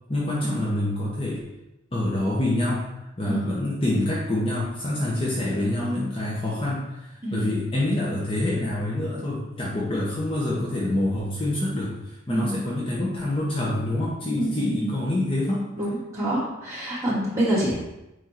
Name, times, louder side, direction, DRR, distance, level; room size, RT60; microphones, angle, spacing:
voice 1, 0.1-1.5 1.9-2.9 3.2-15.7, left 1 dB, 25° left, -6 dB, 1.1 m, -26 dB
voice 2, 3.2-3.7 7.2-7.5 12.3-12.7 14.4-15.0 15.8-17.7, right 1 dB, 15° right, -9 dB, 2.8 m, -27 dB
9.1 x 3.7 x 4.5 m, 0.94 s
head